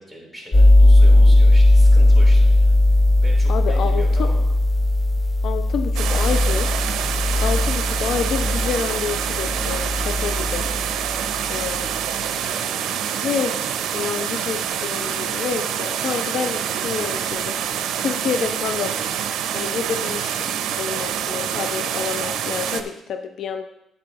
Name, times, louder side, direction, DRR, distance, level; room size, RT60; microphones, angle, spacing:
voice 1, 0.0-2.8 3.2-4.4 10.6-11.6 12.3-13.0, equal, 5° left, -2 dB, 3.5 m, -40 dB
sound 1, 0.5-11.2, left 1 dB, 35° left, 0.8 m, -17 dB
voice 2, 3.5-4.3 5.4-6.7 7.4-10.7 11.5-11.9 13.2-13.6 13.9-19.1 19.5-20.4 20.8-23.6, left 6 dB, 70° left, 7 dB, 0.6 m, -28 dB
sound 2, 6.0-22.8, right 9 dB, 85° right, 0.6 m, -26 dB
10.0 x 8.6 x 2.9 m, 0.81 s
cardioid pair, 90°, 0 cm